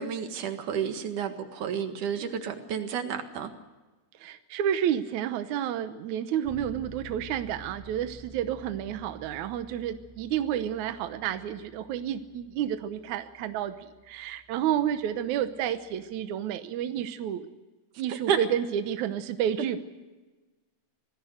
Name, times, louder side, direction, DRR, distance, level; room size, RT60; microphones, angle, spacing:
voice 1, 0.0-3.5 18.1-18.4, right 8 dB, 60° right, 7 dB, 2.8 m, -31 dB
voice 2, 4.2-17.5 18.0-19.8, right 10 dB, 75° right, 9 dB, 1.8 m, -30 dB
Bass guitar, 6.4-16.2, equal, 10° right, 2.4 m, -51 dB
25.5 x 18.5 x 6.5 m, 1.2 s
omnidirectional pair, 4.6 m